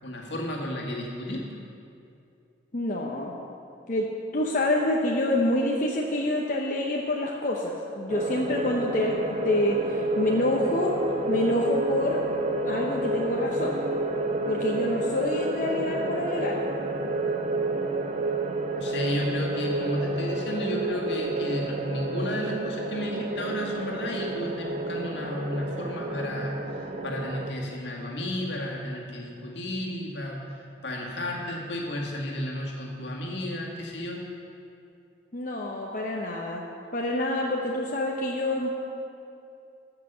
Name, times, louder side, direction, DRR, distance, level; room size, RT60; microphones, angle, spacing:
voice 1, 0.0-1.5 18.7-26.5 27.0-34.2, left 1 dB, 75° left, -1 dB, 1.9 m, -32 dB
voice 2, 2.7-3.3 3.9-9.1 9.4-10.9 11.3-12.2 12.6-13.8 14.5-16.6 35.3-36.6 36.9-38.7, left 1 dB, 45° left, -1 dB, 0.8 m, -27 dB
sound 1, 8.1-27.5, right 2 dB, 35° right, 0.7 m, -30 dB
14.0 x 5.9 x 6.7 m, 2.6 s
head